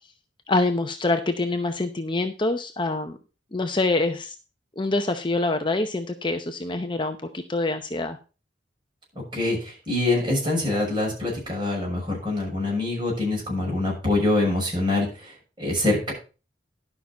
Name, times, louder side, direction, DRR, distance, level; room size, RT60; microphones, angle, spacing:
voice 1, 0.5-3.2 3.5-4.3 4.8-8.2, left 2 dB, 25° left, 7 dB, 0.7 m, -25 dB
voice 2, 9.3-16.1, left 2 dB, 25° right, -2 dB, 6.6 m, -25 dB
12.0 x 6.0 x 5.3 m, 0.33 s
head